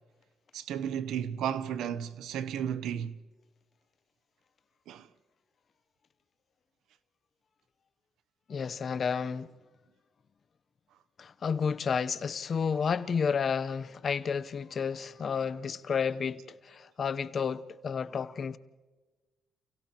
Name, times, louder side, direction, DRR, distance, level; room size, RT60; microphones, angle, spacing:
voice 1, 0.5-3.1 4.9-5.1, right 9 dB, 80° right, 0.8 m, -33 dB
voice 2, 8.5-9.5 11.2-18.6, left 6 dB, 50° left, 0.8 m, -31 dB
30.0 x 29.0 x 3.0 m
cardioid pair, 90°, 0 cm